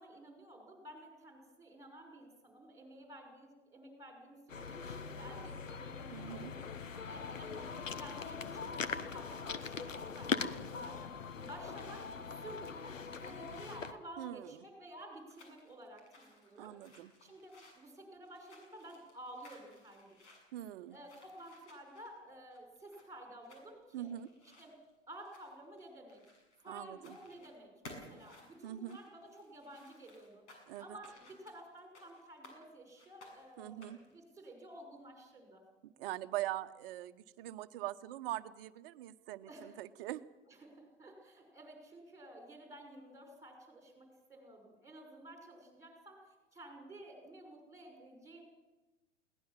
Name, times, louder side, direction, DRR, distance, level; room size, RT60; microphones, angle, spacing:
voice 1, 0.0-6.6 7.0-16.8 17.2-20.1 20.9-24.1 24.6-24.7 25.1-26.2 26.6-30.4 30.8-35.6 39.5-39.8 40.5-48.4, right 1 dB, 10° right, 3 dB, 6.1 m, -52 dB
sound 1, 4.5-13.9, left 5 dB, 80° left, 1.3 m, -41 dB
voice 2, 6.1-6.5 14.2-14.5 16.6-17.1 20.5-21.0 23.9-24.3 26.7-27.2 28.6-29.0 30.7-31.0 33.6-34.0 36.0-40.2, right 14 dB, 45° right, 11 dB, 1.1 m, -42 dB
sound 2, 15.1-26.7 27.0-27.5 27.8-32.6 33.0-34.1, left 2 dB, 60° left, 7.3 m, -59 dB
22.0 x 18.0 x 7.5 m, 1.1 s
figure-of-eight pair, 100°, 38 cm